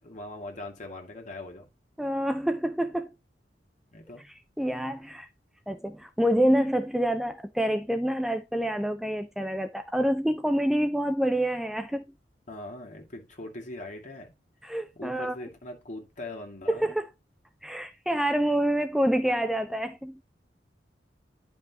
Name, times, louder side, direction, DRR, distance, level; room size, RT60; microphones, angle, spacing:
voice 1, 0.0-1.7 3.9-4.3 12.5-14.3 15.0-16.9, left 2 dB, 45° left, 2.3 m, -41 dB
voice 2, 2.0-3.1 4.6-5.3 5.7-12.0 14.6-15.4 16.7-17.1 17.6-20.2, equal, ahead, 0.4 m, -27 dB
10.5 x 5.5 x 2.9 m
head